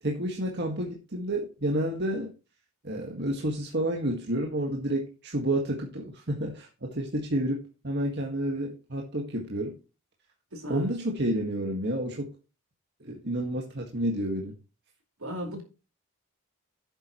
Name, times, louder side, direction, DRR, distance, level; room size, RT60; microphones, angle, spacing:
voice 1, 0.0-2.3 2.8-9.8 10.7-12.3 13.0-14.6, right 1 dB, 50° right, 1 dB, 1.8 m, -30 dB
voice 2, 10.5-10.9 15.2-15.6, equal, 70° right, 4 dB, 4.6 m, -36 dB
11.5 x 9.1 x 3.1 m, 0.32 s
head